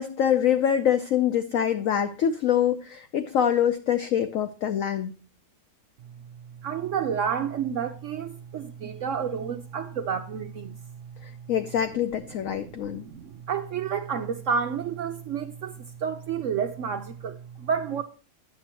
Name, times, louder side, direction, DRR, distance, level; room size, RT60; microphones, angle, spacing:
voice 1, 0.0-5.1 11.5-13.0, left 9 dB, 70° left, 0.8 m, -24 dB
voice 2, 6.6-10.7 11.9-12.0 12.6-18.0, right 7 dB, 75° right, 0.7 m, -30 dB
10.5 x 8.5 x 2.9 m
omnidirectional pair, 1.9 m